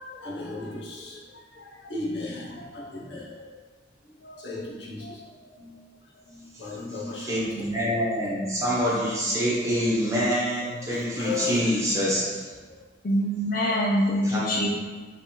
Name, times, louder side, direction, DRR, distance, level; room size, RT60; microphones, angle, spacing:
voice 1, 0.0-3.6 4.0-5.8 6.1-7.7 10.8-11.8 12.1-12.2 12.8-12.9 13.6-13.7, left 3 dB, 70° left, -5 dB, 1.0 m, -36 dB
voice 2, 6.5-12.5 14.2-14.7, equal, 15° right, -7 dB, 1.1 m, -26 dB
voice 3, 13.0-14.7, equal, 50° left, -3 dB, 0.4 m, -24 dB
3.3 x 3.3 x 4.3 m, 1.4 s
head